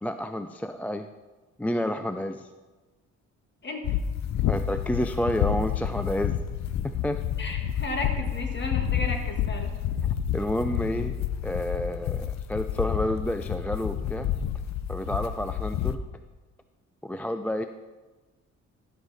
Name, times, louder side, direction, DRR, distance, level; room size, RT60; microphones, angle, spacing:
voice 1, 0.0-1.1 1.6-2.5 4.4-6.4 6.8-7.2 10.3-11.1 11.4-14.3 14.9-16.0 17.0-17.6, equal, 5° left, 8 dB, 0.3 m, -30 dB
voice 2, 3.6-4.0 7.4-9.7, left 2 dB, 35° left, 3 dB, 1.7 m, -34 dB
sound 1, 3.8-15.9, left 9 dB, 65° left, 0.6 m, -29 dB
12.5 x 6.5 x 4.1 m, 1.2 s
cardioid pair, 90°, 30 cm